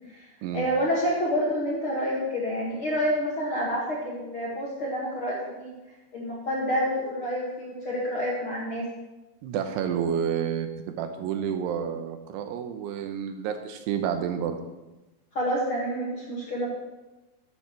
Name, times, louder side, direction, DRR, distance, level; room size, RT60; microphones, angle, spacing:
voice 1, 0.5-5.7 6.1-8.9 15.3-16.7, equal, 45° left, -5 dB, 1.7 m, -28 dB
voice 2, 9.4-14.6, right 8 dB, 80° right, 7 dB, 2.7 m, -30 dB
14.0 x 10.5 x 3.2 m, 1.1 s
omnidirectional pair, 5.0 m